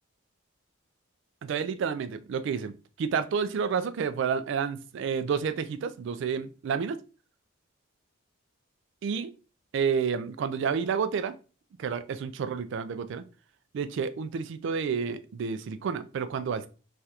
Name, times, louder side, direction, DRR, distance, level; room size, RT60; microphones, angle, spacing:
voice 1, 1.4-2.7 3.0-7.0 9.0-9.3 9.7-11.3 11.8-13.2 13.7-16.7, right 6 dB, 60° right, 0.3 m, -30 dB
3.2 x 2.3 x 2.8 m
head